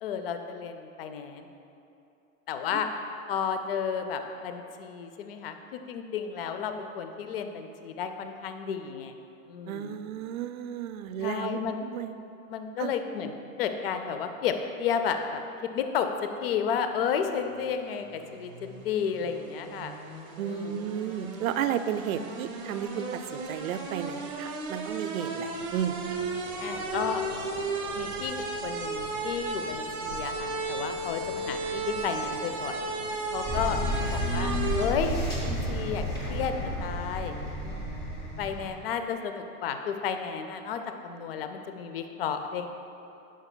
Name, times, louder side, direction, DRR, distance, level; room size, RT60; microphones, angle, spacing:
voice 1, 0.0-1.5 2.5-2.9 3.3-9.2 9.5-10.0 11.2-11.8 12.5-16.1 16.4-20.0 20.4-20.8 26.6-27.2 27.9-32.8 33.3-36.5 36.8-37.9 38.4-42.7, left 7 dB, 45° left, 7 dB, 0.5 m, -32 dB
voice 2, 9.7-12.1 12.8-12.9 20.4-26.0, right 9 dB, 80° right, 10 dB, 0.6 m, -33 dB
sound 1, 18.2-34.9, right 3 dB, 25° right, 0.6 m, -35 dB
sound 2, 25.5-36.9, left 3 dB, 85° left, 1.5 m, -45 dB
sound 3, 33.4-38.7, equal, 10° left, 0.8 m, -31 dB
16.5 x 6.0 x 2.2 m, 2.7 s
supercardioid pair, 175°, 41 cm